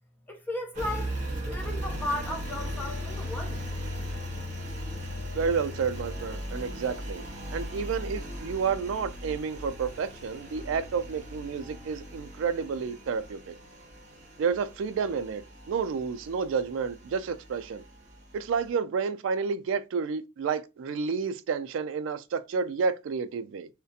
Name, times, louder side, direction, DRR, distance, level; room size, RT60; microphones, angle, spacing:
voice 1, 0.3-1.2 1.5-3.6, left 1 dB, 10° left, 0.5 m, -35 dB
Engine, 0.7-18.7, equal, 35° right, 0.7 m, -38 dB
voice 2, 5.3-7.2 7.5-13.5 14.4-17.8 18.3-23.7, right 5 dB, 75° right, 0.3 m, -30 dB
2.4 x 2.1 x 2.6 m
head